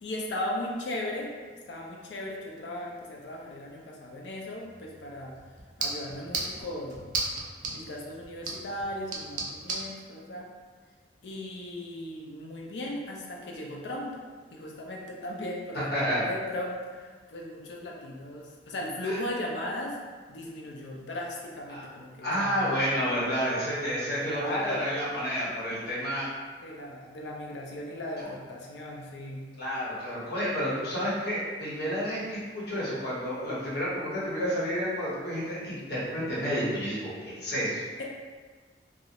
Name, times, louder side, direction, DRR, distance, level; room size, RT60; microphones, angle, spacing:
voice 1, 0.0-1.3 1.7-5.4 5.8-7.1 7.7-10.5 11.2-14.1 14.5-20.0 20.3-22.8 24.1-25.0 26.6-29.4 38.0-38.1, left 1 dB, 80° left, -1 dB, 0.4 m, -37 dB
sound 1, 4.6-9.9, right 3 dB, 45° right, 0.4 m, -36 dB
voice 2, 15.9-16.2 19.0-19.2 21.7-21.9 22.2-26.3 28.2-28.3 29.6-37.8, equal, 60° left, -7 dB, 0.8 m, -30 dB
2.3 x 2.0 x 2.8 m, 1.5 s
head